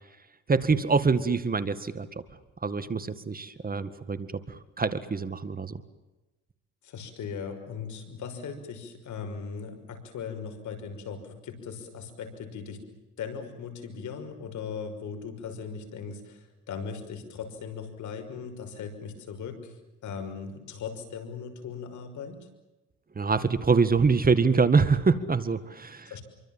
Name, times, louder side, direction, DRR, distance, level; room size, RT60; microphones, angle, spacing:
voice 1, 0.5-2.1 2.6-4.3 4.8-5.7 23.2-26.1, right 4 dB, 30° right, 12 dB, 1.9 m, -24 dB
voice 2, 6.8-12.8 13.2-19.7 20.0-22.5 26.1-26.2, left 6 dB, 70° left, 7 dB, 6.0 m, -38 dB
27.0 x 24.5 x 7.5 m, 1.1 s
cardioid pair, 90°, 30 cm